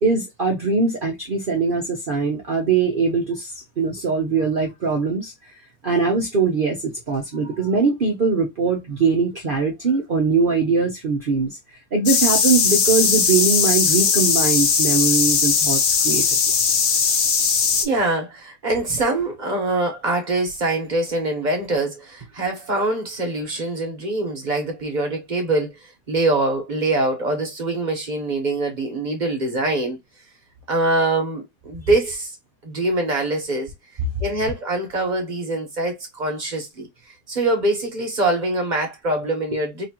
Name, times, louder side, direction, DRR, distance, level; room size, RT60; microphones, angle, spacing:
voice 1, 0.0-5.5 5.8-11.6 11.9-16.4, right 4 dB, 85° right, 0.4 m, -21 dB
sound 1, 12.1-17.9, left 6 dB, 60° left, 0.7 m, -19 dB
voice 2, 17.8-30.0 30.7-32.4 32.6-33.7 34.2-36.9 37.3-39.9, right 2 dB, 35° right, 0.8 m, -24 dB
4.2 x 2.5 x 2.8 m
omnidirectional pair, 2.0 m